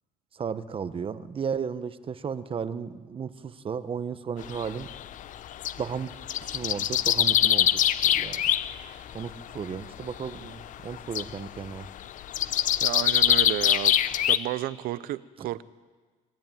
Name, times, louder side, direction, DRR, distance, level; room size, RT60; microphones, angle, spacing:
voice 1, 0.3-4.9 5.8-6.1 6.4-7.8 8.1-8.4 9.1-11.8 15.4-15.5, right 6 dB, 35° right, 12 dB, 1.2 m, -34 dB
sound 1, 4.4-5.8 6.1-8.8 9.1-9.5 10.2-10.6 10.9-14.4, left 11 dB, 60° left, 0.8 m, -24 dB
voice 2, 12.8-14.0 14.3-15.6, right 14 dB, 70° right, 16 dB, 0.7 m, -32 dB
26.0 x 14.0 x 9.2 m, 1.4 s
cardioid pair, 100°, 15 cm